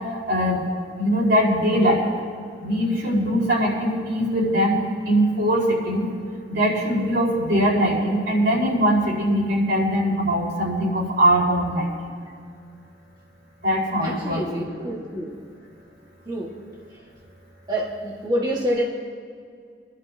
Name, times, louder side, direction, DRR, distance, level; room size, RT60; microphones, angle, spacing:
voice 1, 0.3-0.6 1.0-2.0 2.6-4.8 5.0-6.0 6.5-11.9 13.6-14.9, equal, 90° right, -5 dB, 4.5 m, -21 dB
voice 2, 14.0-15.3 16.3-16.5 17.7-18.8, right 1 dB, 25° right, -4 dB, 1.7 m, -27 dB
27.0 x 11.5 x 2.8 m, 2.2 s
head